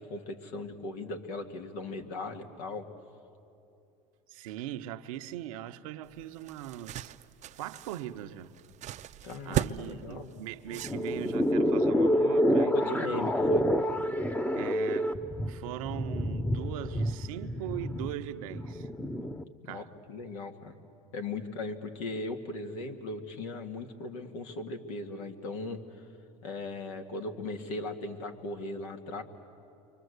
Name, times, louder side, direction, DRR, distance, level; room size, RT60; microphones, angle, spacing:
voice 1, 0.0-2.9 9.2-10.4 12.7-13.7 19.6-20.7 21.1-26.1 26.4-29.2, left 2 dB, 85° left, 2.0 m, -38 dB
voice 2, 4.3-7.1 7.6-8.5 9.4-13.2 14.6-15.2 15.5-18.9 19.7-19.9, right 12 dB, 85° right, 0.9 m, -40 dB
sound 1, 6.1-11.5, right 12 dB, 45° right, 0.6 m, -37 dB
sound 2, 10.7-19.4, equal, 10° left, 0.8 m, -28 dB
28.5 x 24.0 x 8.1 m
supercardioid pair, 95°, 17 cm